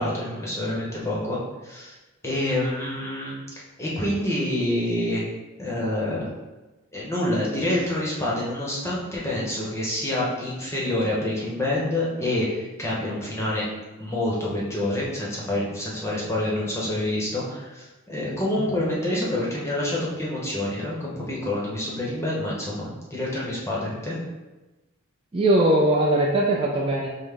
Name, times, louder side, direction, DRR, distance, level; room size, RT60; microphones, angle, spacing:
voice 1, 0.0-2.0 2.2-3.3 3.8-5.2 5.6-6.3 6.9-13.6 14.0-24.2, left 1 dB, 10° left, -5 dB, 0.8 m, -27 dB
voice 2, 25.3-27.1, right 1 dB, 25° right, -4 dB, 0.4 m, -20 dB
5.4 x 2.1 x 3.4 m, 1.1 s
head